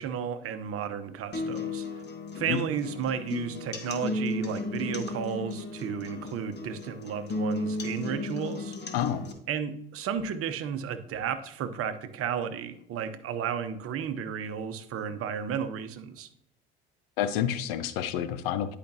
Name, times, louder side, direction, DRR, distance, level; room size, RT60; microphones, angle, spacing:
voice 1, 0.0-1.9 2.3-8.8 9.5-16.3, right 7 dB, 50° right, 10 dB, 0.9 m, -33 dB
sound 1, 1.3-9.3, left 2 dB, 35° left, 1.3 m, -34 dB
voice 2, 17.2-18.8, left 10 dB, 75° left, 13 dB, 0.7 m, -29 dB
10.5 x 5.0 x 2.8 m, 0.72 s
hypercardioid pair, 70°, 30 cm